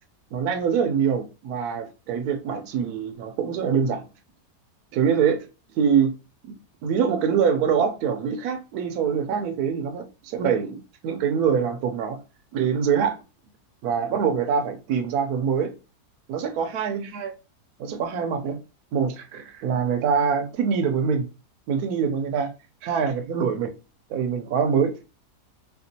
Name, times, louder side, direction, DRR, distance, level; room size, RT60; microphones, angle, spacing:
voice 1, 0.3-4.0 4.9-5.5 5.8-6.1 6.5-6.6 6.8-12.2 12.5-13.2 13.8-15.7 16.3-17.3 17.8-18.6 18.9-21.3 21.7-22.5 22.8-23.7 24.1-25.0, right 7 dB, 75° right, 1.1 m, -24 dB
4.3 x 2.3 x 2.7 m
omnidirectional pair, 1.7 m